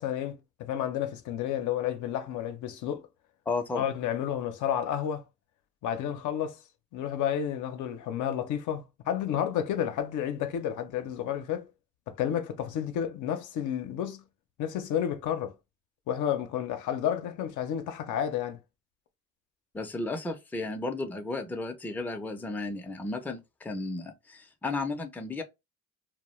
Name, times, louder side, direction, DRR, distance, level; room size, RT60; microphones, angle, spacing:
voice 1, 0.0-3.0 3.8-5.2 5.8-6.6 6.9-11.7 12.1-14.2 14.6-15.5 16.1-18.6, left 9 dB, 75° left, 0.5 m, -31 dB
voice 2, 3.5-3.8 19.7-25.4, left 3 dB, 5° left, 0.4 m, -34 dB
2.2 x 2.0 x 3.0 m
cardioid pair, 90°, 30 cm